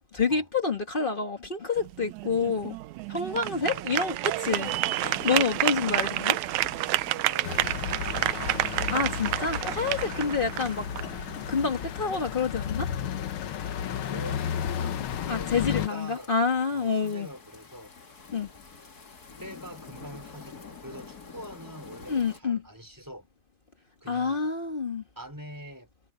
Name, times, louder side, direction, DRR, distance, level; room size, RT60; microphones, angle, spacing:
voice 1, 0.1-2.8 3.1-4.7 5.0-6.4 8.9-10.9 11.5-12.9 15.3-17.3 18.3-18.5 22.1-22.6 24.1-25.0, left 4 dB, 90° left, 0.4 m, -28 dB
sound 1, 1.8-11.9, right 17 dB, 80° right, 1.8 m, -30 dB
voice 2, 3.6-4.8 7.3-8.6 13.8-16.3 16.7-17.9 19.4-23.3 24.0-24.5 25.2-25.9, equal, 5° right, 3.6 m, -44 dB
sound 2, 4.4-22.4, left 5 dB, 30° left, 2.4 m, -48 dB
sound 3, 7.4-15.9, left 9 dB, 70° left, 1.2 m, -33 dB
omnidirectional pair, 3.7 m